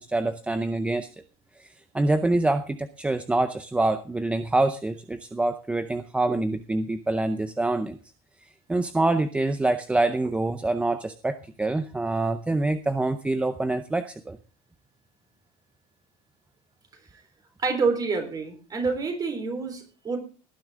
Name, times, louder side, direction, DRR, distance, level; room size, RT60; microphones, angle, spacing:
voice 1, 0.1-1.1 1.6-1.7 1.9-8.0 8.7-14.4, right 2 dB, 10° right, 11 dB, 0.6 m, -25 dB
voice 2, 17.6-20.2, right 4 dB, 25° right, 6 dB, 3.9 m, -27 dB
18.0 x 10.0 x 3.7 m, 0.35 s
cardioid pair, 150°, 15 cm